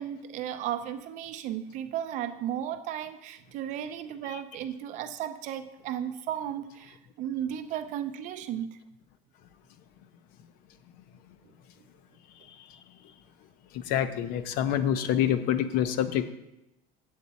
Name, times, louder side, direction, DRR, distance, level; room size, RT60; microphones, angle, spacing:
voice 1, 0.0-8.8, right 10 dB, 45° right, 0.5 m, -35 dB
voice 2, 13.9-16.3, left 10 dB, 55° left, 0.5 m, -26 dB
8.3 x 8.0 x 4.1 m
cardioid pair, 180°, 18 cm